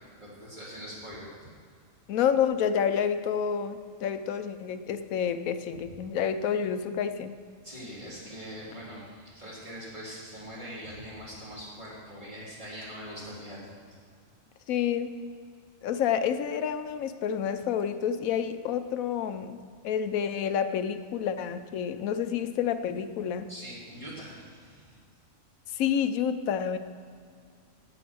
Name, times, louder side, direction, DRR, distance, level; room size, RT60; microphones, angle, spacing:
voice 1, 0.2-1.3 5.9-6.0 7.6-13.7 23.5-25.0, equal, 35° right, -7 dB, 3.8 m, -42 dB
voice 2, 2.1-7.4 14.7-15.1 15.8-19.6 19.8-23.5 25.7-26.8, left 8 dB, 85° left, 10 dB, 1.1 m, -29 dB
16.5 x 6.1 x 6.2 m, 2.2 s
omnidirectional pair, 1.4 m